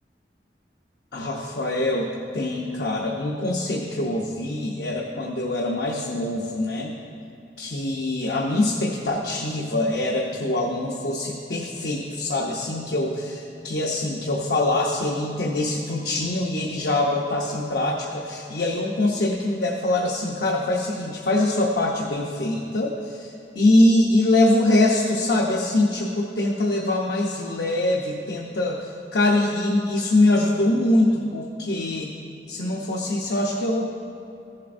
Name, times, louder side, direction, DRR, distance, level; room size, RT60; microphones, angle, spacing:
voice 1, 1.1-6.9 7.6-32.1 32.5-33.9, left 1 dB, 70° left, -2 dB, 0.7 m, -23 dB
14.5 x 7.5 x 2.5 m, 2.8 s
head